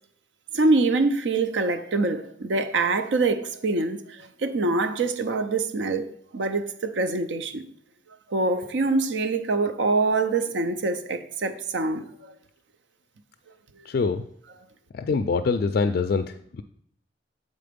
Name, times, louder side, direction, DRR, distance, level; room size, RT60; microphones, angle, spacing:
voice 1, 0.5-7.6 8.3-12.0, right 3 dB, 75° right, 0.6 m, -25 dB
voice 2, 15.0-16.2, left 4 dB, 55° left, 0.3 m, -23 dB
7.7 x 4.1 x 5.1 m
head